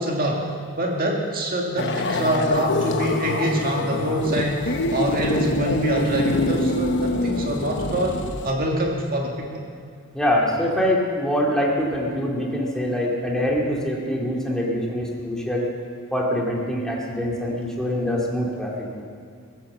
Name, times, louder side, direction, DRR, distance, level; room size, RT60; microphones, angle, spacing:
voice 1, 0.0-9.6, right 1 dB, 40° right, 0 dB, 1.9 m, -25 dB
sound 1, 1.8-8.5, left 2 dB, 55° left, 1.0 m, -25 dB
voice 2, 10.1-15.7 16.1-19.0, equal, 5° left, -3 dB, 2.4 m, -24 dB
21.5 x 8.8 x 7.3 m, 2.3 s
head